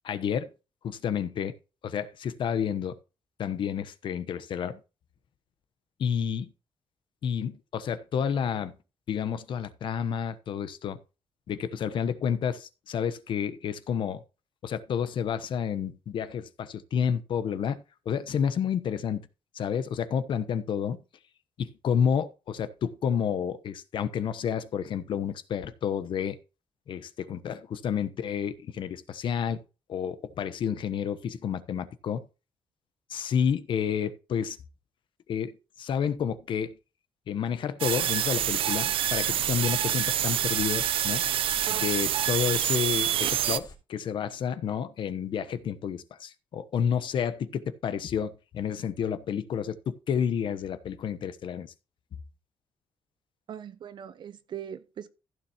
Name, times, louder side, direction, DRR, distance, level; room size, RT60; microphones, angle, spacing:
voice 1, 0.0-0.5 0.8-1.5 1.8-3.0 3.4-4.8 6.0-6.5 7.2-8.7 9.1-11.0 11.5-14.2 14.6-19.3 19.5-21.0 21.6-26.4 26.9-29.6 29.9-32.2 33.1-34.6 35.3-36.7 37.3-41.2 41.7-51.7, left 8 dB, 60° left, 1.0 m, -30 dB
sound 1, 37.8-43.6, right 11 dB, 75° right, 0.6 m, -27 dB
sound 2, 38.0-43.8, left 2 dB, 45° left, 3.4 m, -48 dB
voice 2, 53.5-55.1, right 9 dB, 55° right, 1.0 m, -40 dB
15.5 x 7.1 x 2.9 m
cardioid pair, 150°, 9 cm